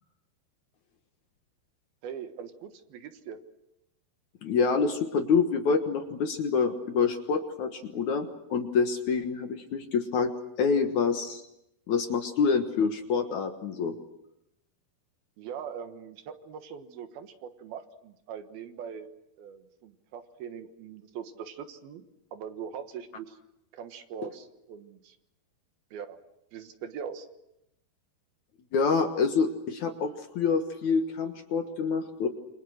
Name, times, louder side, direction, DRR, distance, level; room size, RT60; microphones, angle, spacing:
voice 1, 2.0-3.4 15.4-19.1 19.4-22.0 22.3-23.3 23.7-25.1 25.9-26.2 26.5-27.3, right 7 dB, 75° right, 8 dB, 3.1 m, -41 dB
voice 2, 4.4-10.3 10.6-11.4 11.9-13.9 28.7-32.3, left 5 dB, 60° left, 6 dB, 2.3 m, -27 dB
28.0 x 24.5 x 6.4 m, 0.85 s
omnidirectional pair, 4.6 m